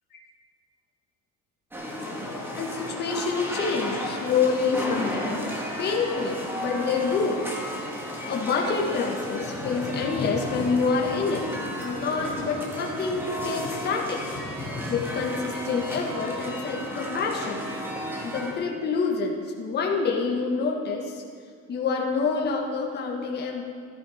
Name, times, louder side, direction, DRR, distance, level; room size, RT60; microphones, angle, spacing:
sound 1, 1.7-18.5, equal, 5° right, 1.7 m, -33 dB
voice 1, 2.6-5.5 5.8-7.4 8.3-11.5 11.8-14.2 14.6-17.7 18.2-21.2 21.7-23.6, left 5 dB, 30° left, -1 dB, 1.5 m, -27 dB
14.0 x 12.0 x 5.0 m, 2.3 s
cardioid pair, 175°, 31 cm